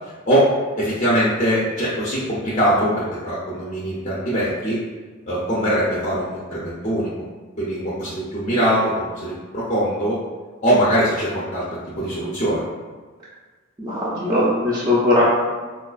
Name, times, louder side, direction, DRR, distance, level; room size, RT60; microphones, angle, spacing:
voice 1, 0.3-4.8 5.3-7.1 7.6-10.2 10.6-11.6 12.0-12.6, equal, 30° left, -8 dB, 0.6 m, -22 dB
voice 2, 13.8-15.2, left 1 dB, 15° right, -10 dB, 0.5 m, -19 dB
4.4 x 2.4 x 2.3 m, 1.4 s
head